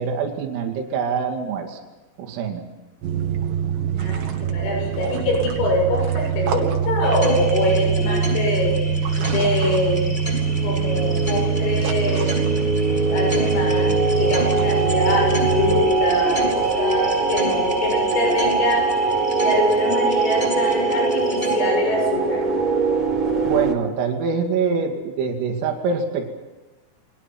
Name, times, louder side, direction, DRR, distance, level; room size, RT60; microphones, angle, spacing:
voice 1, 0.0-1.8 2.2-2.6 23.4-26.3, right 5 dB, 75° right, 2 dB, 5.1 m, -24 dB
sound 1, 3.0-15.8, right 7 dB, 60° right, 3.9 m, -24 dB
voice 2, 3.9-10.1 10.6-12.7 13.1-22.4, left 1 dB, 80° left, 1 dB, 9.9 m, -25 dB
sound 2, 7.0-21.6, equal, 10° left, 6.9 m, -32 dB
sound 3, 10.3-23.7, right 3 dB, 35° right, 3.1 m, -22 dB
29.5 x 22.5 x 6.1 m, 1.1 s
omnidirectional pair, 6.0 m